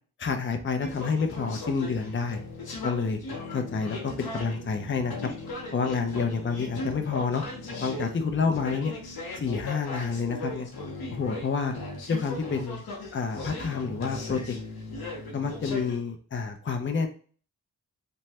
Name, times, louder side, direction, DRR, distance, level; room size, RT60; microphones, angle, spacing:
voice 1, 0.2-2.4 2.8-3.2 3.5-5.3 5.7-7.4 7.8-8.9 9.4-10.7 11.1-11.7 12.1-12.8 13.1-14.6 15.3-17.1, left 5 dB, 35° left, 5 dB, 0.5 m, -29 dB
sound 1, 0.8-16.0, left 2 dB, 85° left, 0.8 m, -38 dB
3.2 x 2.2 x 2.8 m, 0.42 s
cardioid pair, 55°, 36 cm